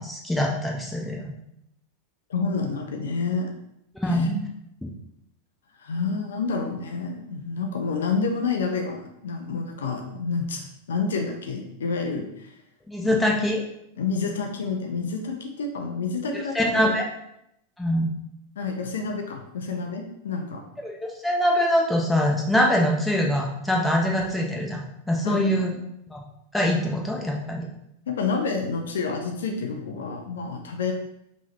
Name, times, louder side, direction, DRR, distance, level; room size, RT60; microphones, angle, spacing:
voice 1, 0.0-1.3 3.9-4.5 4.8-4.9 12.9-13.6 16.5-17.1 17.8-18.1 20.8-20.9 21.2-25.7 26.1-26.2 26.5-27.7, equal, 5° left, -1 dB, 0.8 m, -23 dB
voice 2, 2.3-3.5 4.1-4.3 5.8-12.5 13.0-13.2 14.0-17.0 18.6-20.6 25.2-25.8 28.1-30.9, left 4 dB, 65° left, 3 dB, 0.6 m, -29 dB
5.5 x 3.1 x 2.9 m, 0.79 s
figure-of-eight pair, 90°, 0 cm